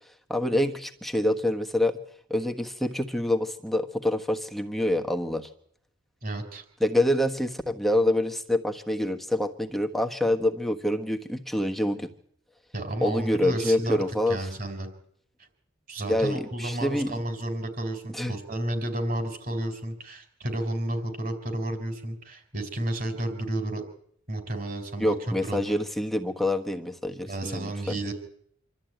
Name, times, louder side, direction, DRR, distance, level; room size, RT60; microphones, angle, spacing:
voice 1, 0.3-2.0 2.3-5.5 6.8-12.1 13.0-14.4 16.1-17.1 18.1-18.3 25.0-28.0, left 1 dB, ahead, 4 dB, 1.4 m, -26 dB
voice 2, 6.2-6.6 12.7-14.0 14.3-14.9 15.9-23.8 24.3-25.2 25.4-25.8 27.3-28.1, right 1 dB, 45° right, 7 dB, 4.3 m, -32 dB
26.5 x 13.5 x 9.2 m, 0.68 s
head